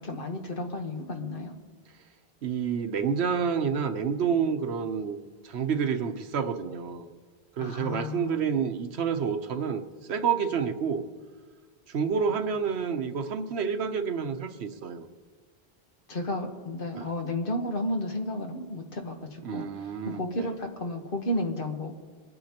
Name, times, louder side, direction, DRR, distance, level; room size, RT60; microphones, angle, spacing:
voice 1, 0.0-1.5 7.6-8.5 16.1-19.6 20.0-21.9, left 1 dB, 55° left, 4 dB, 1.4 m, -32 dB
voice 2, 2.4-5.2 5.4-7.1 7.6-9.8 10.1-11.0 11.9-15.0 17.0-17.1 19.4-20.5, right 6 dB, 85° right, 8 dB, 1.1 m, -29 dB
24.0 x 9.3 x 2.9 m, 1.5 s
omnidirectional pair, 1.1 m